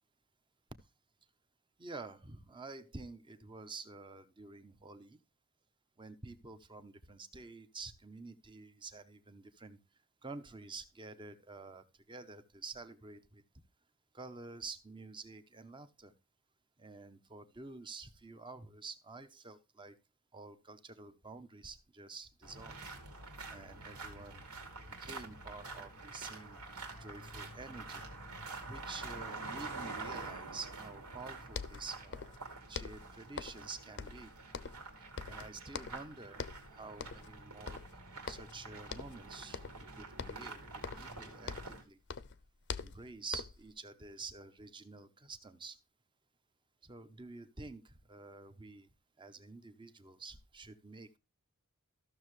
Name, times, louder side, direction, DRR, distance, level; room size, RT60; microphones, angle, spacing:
voice 1, 1.8-5.2 6.0-9.8 10.2-13.4 14.1-16.1 16.8-19.9 20.3-22.8 23.5-24.4 25.0-26.6 27.0-28.0 28.7-32.3 32.7-34.3 35.2-36.4 36.7-37.8 38.3-40.6 41.0-42.0 42.8-45.8 46.9-47.8 48.1-48.9 49.2-51.2, right 3 dB, 20° right, 11 dB, 0.8 m, -49 dB
sound 1, 22.4-41.8, right 3 dB, 85° right, 2.5 m, -47 dB
sound 2, 31.2-31.3 31.5-32.4 32.7-33.7 34.0-34.9 35.2-36.1 36.4-36.7 37.0-37.4 37.7-38.6 38.9-39.2 39.5-39.9 40.2-41.8 42.1-43.7, left 5 dB, 50° left, 0.6 m, -44 dB
14.0 x 6.5 x 3.1 m, 0.26 s
head